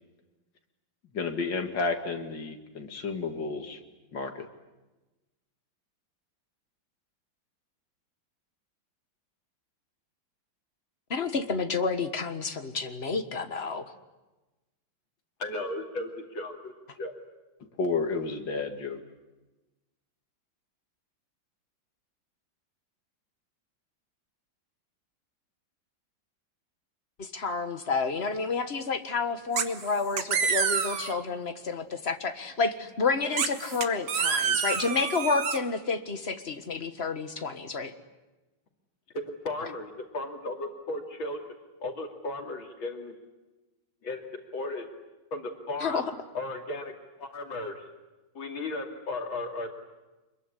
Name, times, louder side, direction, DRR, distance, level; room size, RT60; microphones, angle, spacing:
voice 1, 1.1-3.8 4.1-4.3 17.8-19.0, left 4 dB, 65° left, 5 dB, 2.9 m, -31 dB
voice 2, 11.1-13.9 27.2-37.9 45.8-46.0, left 4 dB, 35° left, 8 dB, 1.6 m, -30 dB
voice 3, 15.4-17.2 39.4-41.4 41.8-43.2 44.0-44.9 45.3-46.1 46.3-46.9 47.2-47.9 48.3-49.7, left 2 dB, 85° left, 3 dB, 3.4 m, -35 dB
sound 1, 29.6-29.9 30.2-31.2 33.4-35.6, right 6 dB, 65° right, 2.1 m, -28 dB
26.0 x 22.0 x 9.9 m, 1.1 s
omnidirectional pair, 2.1 m